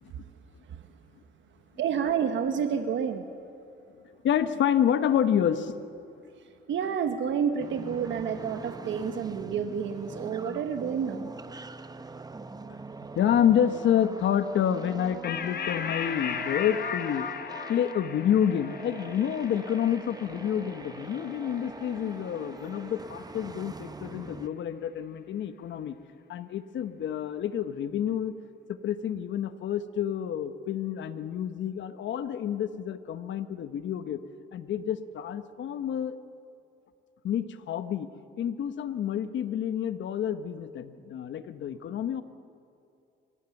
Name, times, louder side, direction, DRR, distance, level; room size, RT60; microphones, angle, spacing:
voice 1, 1.8-3.2 6.7-11.3, right 7 dB, 70° right, 8 dB, 1.2 m, -29 dB
voice 2, 4.2-5.7 13.1-25.9 26.3-28.3 28.8-34.2 34.5-36.2 37.2-38.1 38.4-42.2, left 9 dB, 70° left, 11 dB, 1.1 m, -28 dB
sound 1, 7.6-24.5, right 3 dB, 20° right, 0.8 m, -43 dB
sound 2, 15.2-22.1, left 7 dB, 55° left, 1.3 m, -37 dB
26.5 x 16.0 x 7.2 m, 2.5 s
cardioid pair, 90°, 20 cm